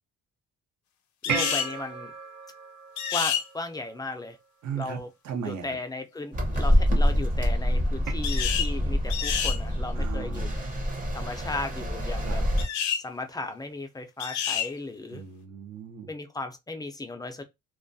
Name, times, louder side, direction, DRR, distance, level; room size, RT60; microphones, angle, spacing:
sound 1, 1.2-1.7 3.0-3.4 8.2-8.7 9.1-9.6 12.6-13.0 14.2-14.7, left 9 dB, 70° left, 0.5 m, -28 dB
voice 1, 1.3-2.1 3.1-4.4 4.7-5.1 5.4-10.5 11.1-12.4 13.0-15.2 16.1-17.4, left 2 dB, 15° left, 0.3 m, -36 dB
sound 2, 1.3-4.0 8.1-8.2, right 5 dB, 85° right, 1.0 m, -34 dB
voice 2, 4.6-5.0 5.2-5.8 10.0-10.8 12.2-12.4 15.1-16.1, right 7 dB, 65° right, 0.7 m, -37 dB
sound 3, 6.3-12.6, equal, 25° right, 0.7 m, -26 dB
2.3 x 2.2 x 2.5 m
cardioid pair, 90°, 30 cm